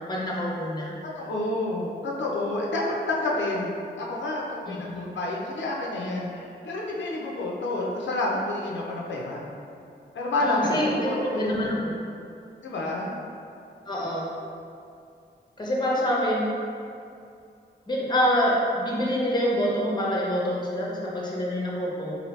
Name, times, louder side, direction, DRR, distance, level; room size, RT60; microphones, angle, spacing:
voice 1, 0.1-1.0 4.7-5.0 10.4-12.0 13.9-14.3 15.6-16.5 17.9-22.1, equal, 25° left, -4 dB, 0.7 m, -26 dB
voice 2, 1.2-9.4 10.1-11.7 12.6-13.1, left 2 dB, 90° left, -3 dB, 0.5 m, -29 dB
2.7 x 2.6 x 3.1 m, 2.5 s
wide cardioid pair, 85°, 18 cm